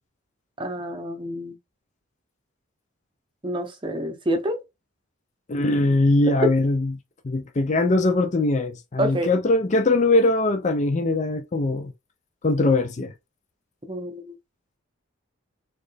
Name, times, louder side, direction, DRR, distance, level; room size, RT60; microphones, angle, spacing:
voice 1, 0.6-1.6 3.4-4.6 6.3-6.4 9.0-9.3 13.9-14.4, right 1 dB, 25° right, 0.8 m, -28 dB
voice 2, 5.5-6.9 7.2-11.9 12.4-13.1, left 2 dB, 35° left, 0.4 m, -21 dB
4.2 x 3.1 x 3.4 m
head